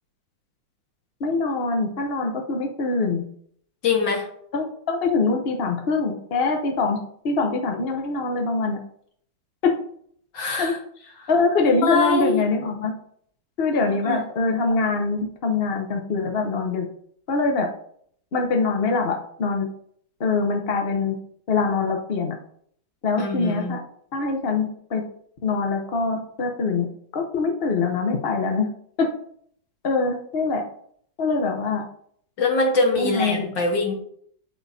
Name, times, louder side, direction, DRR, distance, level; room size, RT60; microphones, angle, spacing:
voice 1, 1.2-3.2 4.5-8.8 9.6-9.7 10.6-10.7 11.3-12.9 13.6-16.9 17.3-17.7 18.3-19.7 20.2-21.2 21.5-22.3 23.0-23.8 24.1-25.0 25.4-26.9 27.1-28.7 29.0-29.1 29.8-30.6 31.2-31.8 33.0-33.5, left 3 dB, 40° left, 2 dB, 0.9 m, -23 dB
voice 2, 3.8-4.3 10.3-10.8 11.2-11.3 11.6-12.4 14.0-14.2 23.2-23.7 32.4-33.9, left 3 dB, 70° left, 1 dB, 2.2 m, -23 dB
12.5 x 4.4 x 2.8 m, 0.64 s
omnidirectional pair, 2.1 m